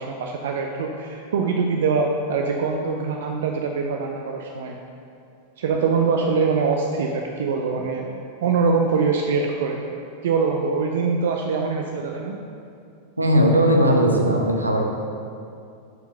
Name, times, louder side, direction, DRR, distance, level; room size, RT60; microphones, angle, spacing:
voice 1, 0.0-4.8 5.6-9.9 10.2-12.4, right 5 dB, 60° right, 2 dB, 0.5 m, -23 dB
voice 2, 13.2-14.9, equal, 85° right, 1 dB, 0.8 m, -18 dB
6.6 x 4.7 x 5.4 m, 2.4 s
figure-of-eight pair, 90°, 0 cm